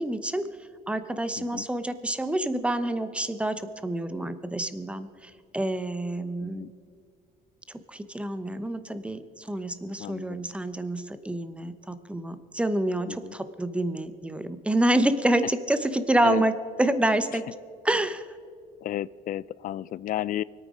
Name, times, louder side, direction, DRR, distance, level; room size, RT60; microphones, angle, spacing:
voice 1, 0.0-6.7 7.7-16.5 16.8-17.4 17.8-18.3, right 1 dB, 5° right, 11 dB, 0.9 m, -27 dB
voice 2, 1.4-1.7 6.4-6.7 10.0-10.4 13.1-13.4 16.2-16.4 18.8-20.4, left 12 dB, 55° left, 21 dB, 0.4 m, -32 dB
24.5 x 9.0 x 5.0 m, 2.2 s
cardioid pair, 110°, 17 cm